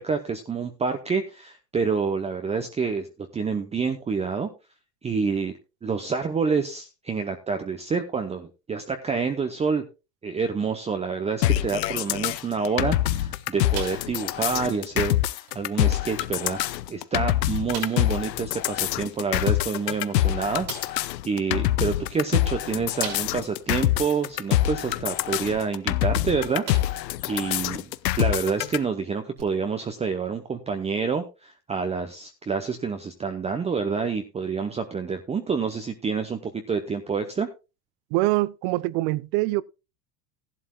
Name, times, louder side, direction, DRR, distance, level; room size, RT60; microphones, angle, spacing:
voice 1, 0.0-3.1 3.3-4.5 5.0-5.5 5.8-9.8 10.2-26.6 27.3-27.9 28.2-37.5, right 5 dB, 15° right, 0.8 m, -28 dB
sound 1, 11.4-28.8, left 14 dB, 90° left, 0.7 m, -25 dB
sound 2, 13.7-14.4 14.7-14.9 15.5-15.6 16.4-16.5 16.9-17.0 17.7-18.2 19.8-19.9 20.7-21.1 23.0-23.6 24.1-24.2 26.0-26.2 26.6-27.2 27.6-27.7 29.4-29.5, right 5 dB, 85° right, 6.6 m, -38 dB
voice 2, 38.1-39.6, right 19 dB, 45° right, 0.5 m, -24 dB
15.0 x 11.5 x 2.3 m
supercardioid pair, 120°, 49 cm